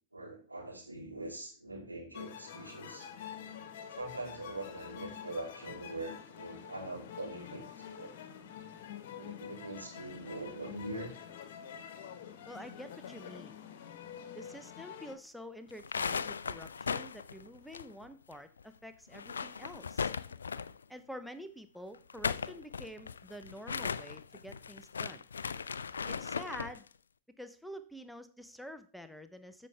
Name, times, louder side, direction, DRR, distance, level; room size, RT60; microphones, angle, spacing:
voice 1, 0.1-3.1 3.9-8.2 9.1-11.1, right 2 dB, 85° right, -1 dB, 3.1 m, -43 dB
sound 1, 2.1-15.2, left 8 dB, 55° left, 1.3 m, -47 dB
voice 2, 12.4-13.6 14.3-20.1 20.9-25.2 26.1-26.9 27.4-29.7, equal, ahead, 10 dB, 0.8 m, -48 dB
sound 2, 15.7-18.3 18.6-18.7 19.1-20.8 21.9-26.8, left 6 dB, 70° left, 0.4 m, -37 dB
13.5 x 5.6 x 3.3 m, 0.39 s
figure-of-eight pair, 90°, 0 cm